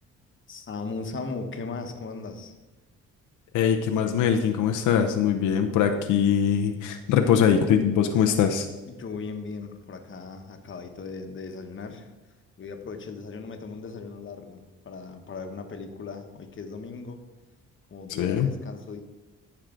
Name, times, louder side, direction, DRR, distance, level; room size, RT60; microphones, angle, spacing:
voice 1, 0.5-2.5 8.9-12.1 12.6-17.2 17.9-19.0, left 4 dB, 40° left, 5 dB, 1.2 m, -38 dB
voice 2, 3.5-8.7 18.2-18.5, left 8 dB, 85° left, 5 dB, 0.8 m, -22 dB
13.5 x 4.8 x 3.8 m, 1.1 s
cardioid pair, 90°, 30 cm